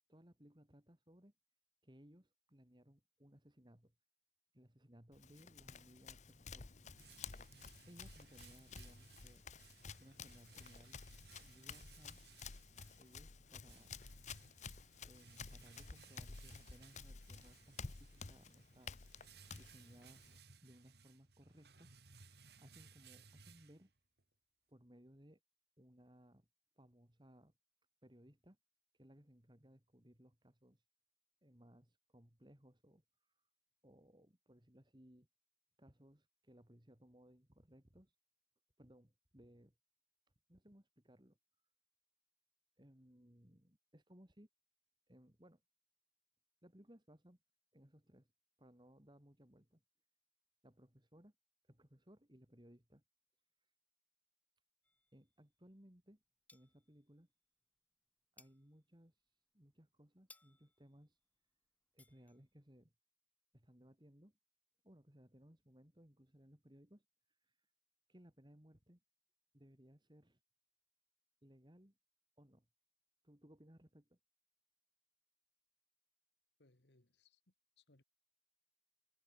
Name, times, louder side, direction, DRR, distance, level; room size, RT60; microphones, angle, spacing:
voice 1, 0.1-1.3 1.8-3.9 4.5-6.7 7.8-9.5 10.0-11.0 11.4-12.2 12.9-14.0 15.0-20.2 20.6-21.9 22.4-23.9 24.7-25.4 25.8-26.5 26.8-27.5 28.0-28.6 28.9-30.8 31.4-33.5 33.8-35.3 35.8-38.2 38.8-39.7 40.5-41.4 42.8-44.5 45.1-45.6 46.6-47.4 47.7-48.3 48.6-49.8 50.6-51.3 51.7-53.0 53.6-53.7 55.1-56.2 56.5-57.3 58.3-61.2 61.9-62.9 63.5-64.4 64.8-67.7 68.1-69.0 69.5-70.4 71.4-72.0 72.4-72.7 73.2-74.2, equal, 25° right, 2.6 m, -64 dB
Run, 5.1-20.4, left 5 dB, 40° left, 0.9 m, -53 dB
sound 1, 6.4-24.2, right 5 dB, 60° right, 2.8 m, -63 dB
sound 2, 54.8-55.9 56.2-57.3 57.6-62.8, left 2 dB, 10° left, 2.7 m, -69 dB
voice 2, 76.6-77.4 77.8-78.0, left 2 dB, 70° left, 2.2 m, -71 dB
head